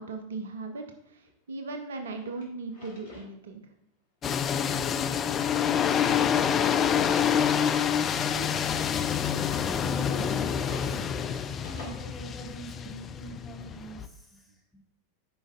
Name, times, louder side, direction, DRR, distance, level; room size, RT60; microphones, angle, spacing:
voice 1, 0.0-3.6, right 3 dB, 65° right, 6 dB, 0.6 m, -38 dB
Drawer open or close, 1.3-1.4 1.9-3.3 3.7-3.8 4.8-6.5 6.9-7.0 7.8-9.0 10.2-11.9, left 2 dB, 60° left, 2.2 m, -50 dB
sound 1, 4.2-14.1, left 8 dB, 25° left, 0.4 m, -27 dB
voice 2, 8.2-8.8 9.2-11.1 11.7-14.8, equal, 5° left, -4 dB, 1.9 m, -44 dB
11.0 x 5.1 x 2.5 m, 0.77 s
figure-of-eight pair, 90°, 0 cm